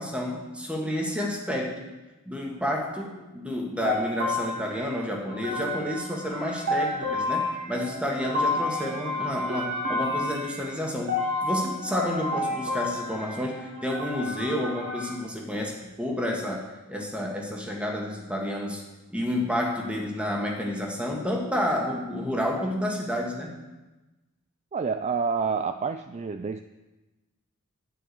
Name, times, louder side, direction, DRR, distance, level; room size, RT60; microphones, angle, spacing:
voice 1, 0.0-1.9 2.2-11.1 11.4-18.8 19.1-23.5, left 1 dB, 5° right, 0 dB, 1.7 m, -30 dB
sound 1, 3.8-15.1, left 2 dB, 55° right, 2.3 m, -30 dB
voice 2, 24.7-26.6, right 5 dB, 30° right, 9 dB, 0.3 m, -28 dB
11.5 x 6.2 x 8.3 m, 1.1 s
head